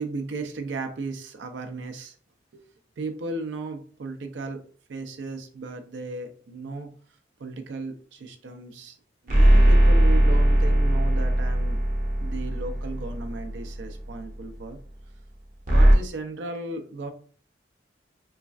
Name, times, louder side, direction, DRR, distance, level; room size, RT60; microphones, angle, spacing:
voice 1, 0.0-2.2 2.5-2.6 3.0-4.6 4.9-6.9 7.4-9.0 9.2-11.8 12.2-14.8 15.7-17.1, right 3 dB, 80° right, 6 dB, 0.4 m, -35 dB
sound 1, 9.3-13.9 15.7-15.9, right 1 dB, 45° right, 0.7 m, -19 dB
3.1 x 2.3 x 2.4 m, 0.43 s
head